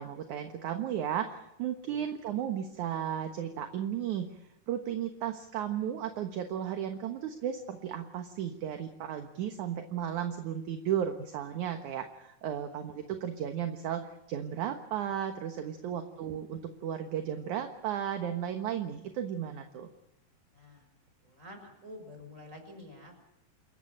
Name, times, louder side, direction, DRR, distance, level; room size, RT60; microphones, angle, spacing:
voice 1, 0.0-4.3 4.7-19.9, right 9 dB, 65° right, 6 dB, 2.4 m, -34 dB
voice 2, 20.5-20.9 21.2-23.2, left 1 dB, 20° right, 5 dB, 6.2 m, -49 dB
28.0 x 15.5 x 8.8 m, 0.85 s
omnidirectional pair, 4.3 m